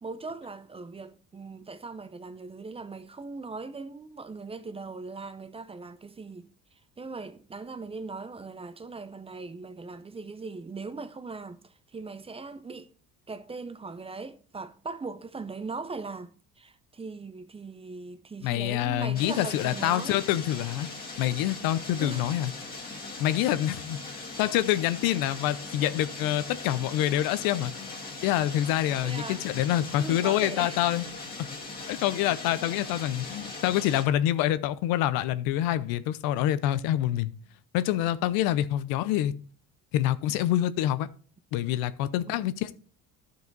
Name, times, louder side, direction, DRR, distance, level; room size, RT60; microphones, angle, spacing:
voice 1, 0.0-6.5 7.0-12.9 13.3-20.2 22.0-22.4 29.0-29.4 30.0-30.8 42.2-42.6, right 4 dB, 15° right, 0.6 m, -40 dB
voice 2, 18.4-20.9 21.2-22.5 23.2-24.0 24.4-27.9 28.2-31.0 31.4-31.5 31.9-37.3 37.7-39.3 39.9-41.1 41.5-42.7, left 13 dB, 90° left, 0.7 m, -26 dB
sound 1, 19.1-34.0, left 3 dB, 25° left, 2.0 m, -40 dB
12.0 x 4.8 x 4.0 m
cardioid pair, 115°, 34 cm